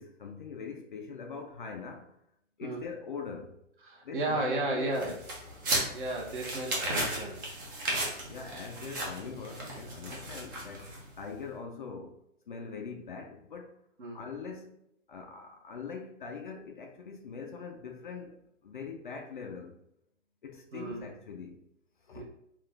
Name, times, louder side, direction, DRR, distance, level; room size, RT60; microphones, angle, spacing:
voice 1, 0.0-2.1 2.6-3.6 4.0-5.2 8.3-13.8 14.1-14.8 15.1-19.8 20.4-21.6 22.0-22.2, left 5 dB, 45° left, 0.4 m, -42 dB
voice 2, 3.8-5.2 5.9-7.4 14.0-14.2 20.7-21.1 22.1-22.2, right 2 dB, 40° right, 1.1 m, -33 dB
sound 1, 4.9-11.2, right 1 dB, 15° right, 0.5 m, -35 dB
3.6 x 2.4 x 3.3 m
figure-of-eight pair, 125°, 37 cm